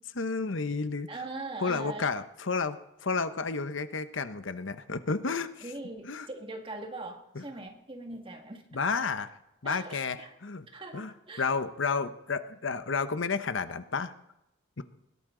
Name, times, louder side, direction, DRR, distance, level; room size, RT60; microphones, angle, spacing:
voice 1, 0.0-1.1 1.6-5.7 6.0-6.3 7.3-7.4 8.7-9.3 9.6-10.7 10.9-14.1 14.8-14.9, left 4 dB, 80° left, 11 dB, 0.9 m, -31 dB
voice 2, 1.1-2.1 5.6-8.6 9.6-10.3 10.7-11.5, right 2 dB, 25° right, 4 dB, 2.0 m, -41 dB
20.5 x 17.0 x 3.9 m, 0.86 s
head